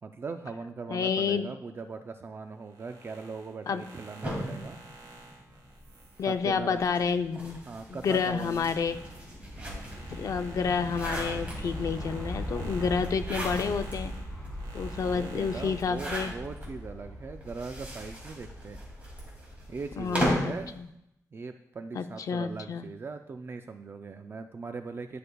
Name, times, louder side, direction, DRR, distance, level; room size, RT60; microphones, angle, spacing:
voice 1, 0.0-4.8 6.3-6.8 7.7-8.8 9.6-9.9 12.6-13.0 15.0-18.8 19.7-20.8 21.3-25.2, right 4 dB, 40° right, 7 dB, 0.4 m, -40 dB
voice 2, 0.9-1.5 3.7-3.8 6.2-7.6 7.9-9.0 10.1-14.1 14.7-16.3 20.0-20.9 21.9-22.9, left 6 dB, 60° left, 9 dB, 0.5 m, -29 dB
sound 1, 2.6-7.7 8.2-16.0, right 2 dB, 85° right, 1.4 m, -50 dB
sound 2, 4.2-5.8 6.7-10.1 10.6-12.0 13.0-13.9 14.4-14.5 14.7-14.8 15.7-16.7 17.4-20.6, equal, 20° right, 2.5 m, -36 dB
sound 3, 5.4-20.7, equal, 20° left, 2.9 m, -41 dB
11.0 x 6.5 x 2.3 m, 0.80 s
wide cardioid pair, 135°, 6 cm